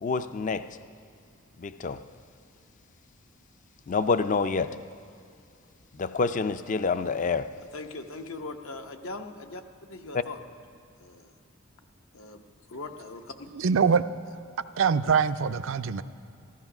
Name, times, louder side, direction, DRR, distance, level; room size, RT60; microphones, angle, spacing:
voice 1, 0.0-0.7 1.6-2.0 3.9-4.8 5.9-7.5, left 4 dB, 35° left, 0.4 m, -27 dB
voice 2, 7.6-9.6 9.9-10.4 11.0-11.3 12.1-12.4 12.7-13.3, left 3 dB, 80° left, 0.9 m, -40 dB
voice 3, 13.5-14.0 14.8-16.0, right 6 dB, 70° right, 0.5 m, -23 dB
14.5 x 13.0 x 6.0 m
head